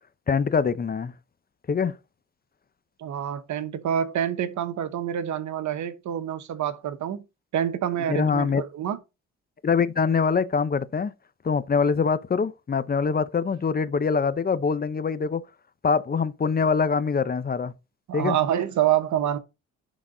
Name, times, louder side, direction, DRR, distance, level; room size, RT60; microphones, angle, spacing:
voice 1, 0.3-1.1 1.7-1.9 8.1-8.6 9.6-11.1 11.4-15.4 15.8-17.7 18.1-18.4, left 5 dB, 30° left, 0.7 m, -24 dB
voice 2, 3.0-7.2 7.5-9.0 18.1-19.4, right 10 dB, 70° right, 1.1 m, -27 dB
11.0 x 4.0 x 3.9 m
cardioid pair, 90°, 30 cm